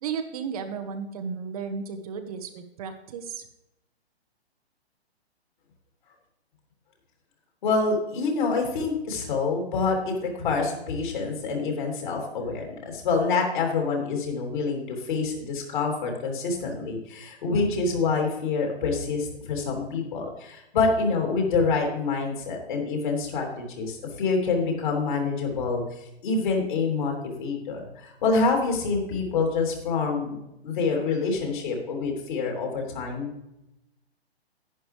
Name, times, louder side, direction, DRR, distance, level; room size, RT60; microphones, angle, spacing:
voice 1, 0.0-3.5, right 6 dB, 35° right, 6 dB, 1.0 m, -34 dB
voice 2, 7.6-25.8 26.2-30.4 30.6-33.3, left 4 dB, 50° left, 1 dB, 3.3 m, -26 dB
11.0 x 10.0 x 3.3 m, 0.89 s
figure-of-eight pair, 125°, 32 cm